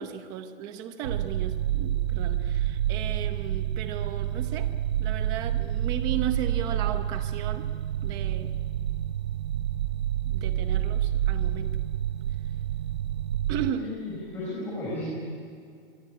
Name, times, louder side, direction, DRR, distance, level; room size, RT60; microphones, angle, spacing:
voice 1, 0.0-4.7 5.0-7.7 8.0-8.5 10.3-11.8 13.5-13.9, right 9 dB, 15° right, 9 dB, 0.7 m, -35 dB
sound 1, 1.0-13.7, right 11 dB, 50° right, 0.6 m, -28 dB
voice 2, 13.8-15.1, left 2 dB, 5° left, -7 dB, 6.0 m, -34 dB
24.5 x 23.0 x 9.9 m, 2.3 s
hypercardioid pair, 180°, 29 cm